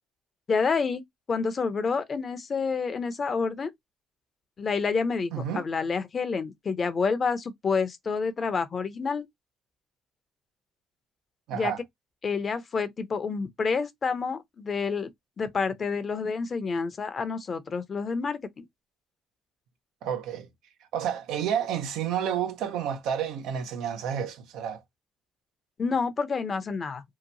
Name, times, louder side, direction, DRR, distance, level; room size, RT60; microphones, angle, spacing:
voice 1, 0.5-1.0 1.3-3.7 4.6-9.3 11.5-11.7 12.2-15.1 15.4-18.6 25.8-27.0, left 5 dB, 40° left, 0.6 m, -28 dB
voice 2, 5.3-5.6 11.5-11.8 20.0-20.5 20.9-24.8, right 8 dB, 85° right, 0.6 m, -30 dB
2.8 x 2.1 x 2.6 m
cardioid pair, 85°, 0 cm